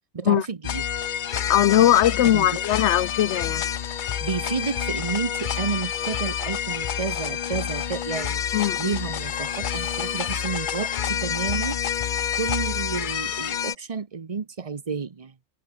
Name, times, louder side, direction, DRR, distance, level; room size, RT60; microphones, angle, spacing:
voice 1, 0.1-0.8 2.3-2.6 4.2-8.4 8.8-11.8 12.3-15.3, right 5 dB, 35° right, 0.9 m, -31 dB
sound 1, 0.6-13.7, left 9 dB, 50° left, 0.7 m, -28 dB
voice 2, 1.5-3.7 8.5-8.9, left 12 dB, 85° left, 0.9 m, -20 dB
omnidirectional pair, 1.2 m